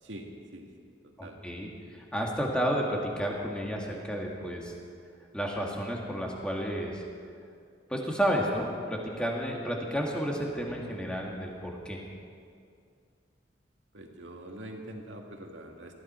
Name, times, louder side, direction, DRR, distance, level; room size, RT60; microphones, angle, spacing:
voice 1, 0.0-1.4 13.9-15.9, right 1 dB, 85° right, 2 dB, 1.9 m, -44 dB
voice 2, 1.2-4.7 5.3-7.0 7.9-12.0, equal, 5° left, -1 dB, 2.0 m, -31 dB
20.5 x 13.5 x 4.4 m, 2.3 s
head